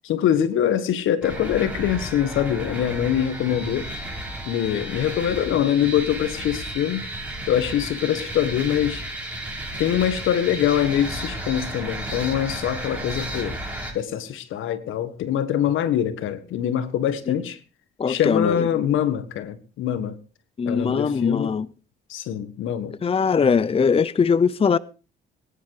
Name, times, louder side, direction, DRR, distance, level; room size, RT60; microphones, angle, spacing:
voice 1, 0.0-3.9 4.5-7.1 7.5-9.0 9.8-13.6 13.9-17.6 18.1-20.2 20.7-21.5 22.1-22.9, left 10 dB, 85° left, 1.7 m, -24 dB
sound 1, 1.2-13.9, right 1 dB, 5° right, 6.8 m, -33 dB
voice 2, 18.0-18.7 20.6-21.7 23.0-24.8, left 6 dB, 30° left, 0.7 m, -21 dB
20.0 x 10.5 x 4.9 m
cardioid pair, 90°, 20 cm